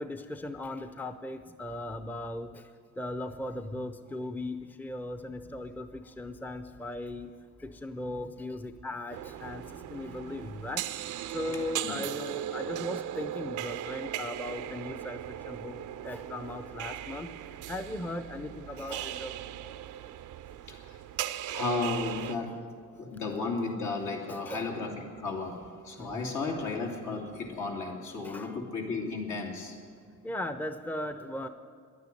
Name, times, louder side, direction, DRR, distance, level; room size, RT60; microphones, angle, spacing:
voice 1, 0.0-2.5 3.0-7.3 7.6-9.6 9.9-10.8 11.3-15.2 15.5-15.8 16.0-17.3 17.7-19.3 24.3-24.7 26.0-26.3 28.2-28.5 30.2-31.5, left 1 dB, 5° left, 10 dB, 0.6 m, -38 dB
sound 1, 9.1-22.4, right 11 dB, 80° right, 0.6 m, -38 dB
voice 2, 9.4-10.5 11.8-12.1 20.7-21.0 21.5-22.6 23.0-25.6 25.8-29.7, left 3 dB, 70° left, 0 dB, 2.7 m, -34 dB
11.0 x 9.5 x 9.9 m, 2.1 s
cardioid pair, 90°, 30 cm